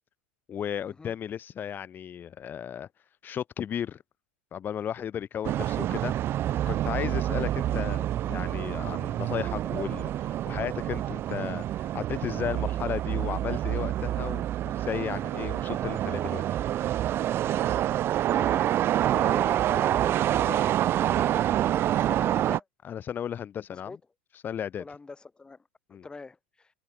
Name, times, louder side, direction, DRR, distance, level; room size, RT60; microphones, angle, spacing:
voice 1, 0.5-2.9 3.2-4.0 4.5-6.1 6.7-16.4 22.8-24.0 24.4-24.8 25.9-26.0, left 9 dB, 30° left, 3.2 m, -34 dB
sound 1, 5.4-22.6, right 12 dB, 40° right, 2.3 m, -27 dB
voice 2, 18.3-22.7 23.7-24.0 24.8-25.6 26.0-26.7, left 3 dB, 15° left, 7.7 m, -43 dB
hypercardioid pair, 90°, 6 cm